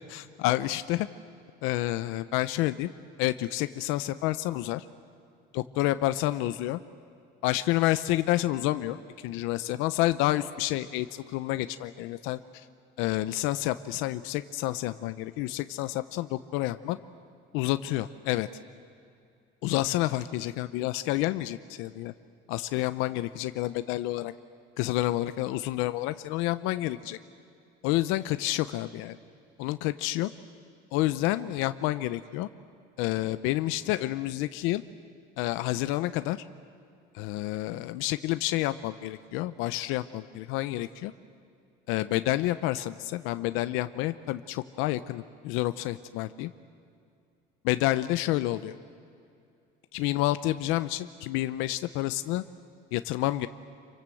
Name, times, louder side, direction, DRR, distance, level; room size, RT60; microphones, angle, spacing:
voice 1, 0.1-1.1 1.6-2.9 3.2-4.8 5.5-6.8 7.4-9.0 9.2-12.4 13.0-17.0 17.5-18.5 19.6-22.1 22.5-24.3 24.8-27.2 27.8-29.2 29.6-30.3 30.9-32.5 33.0-34.8 35.4-36.4 37.1-41.1 41.9-46.5 47.6-48.7 49.9-52.4 52.9-53.5, left 16 dB, 90° left, 12 dB, 0.7 m, -29 dB
28.0 x 24.5 x 7.8 m, 2.4 s
cardioid pair, 170°, 20 cm